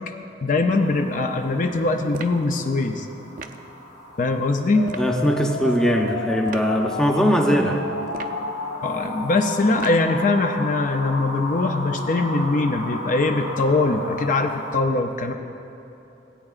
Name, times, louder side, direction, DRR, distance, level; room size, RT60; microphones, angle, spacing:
voice 1, 0.4-3.1 4.2-4.9 8.8-15.3, left 3 dB, 45° left, 5 dB, 0.5 m, -22 dB
sound 1, 0.7-14.7, equal, 65° left, 1.6 m, -37 dB
sound 2, 2.1-2.5 3.4-3.7 4.8-5.1 6.4-6.7 8.1-8.5 9.8-10.1, right 4 dB, 50° right, 0.4 m, -37 dB
sound 3, 4.8-14.8, left 3 dB, 80° left, 0.6 m, -33 dB
voice 2, 5.0-7.8, equal, 5° left, 1 dB, 0.7 m, -20 dB
17.5 x 8.7 x 2.4 m, 3.0 s
head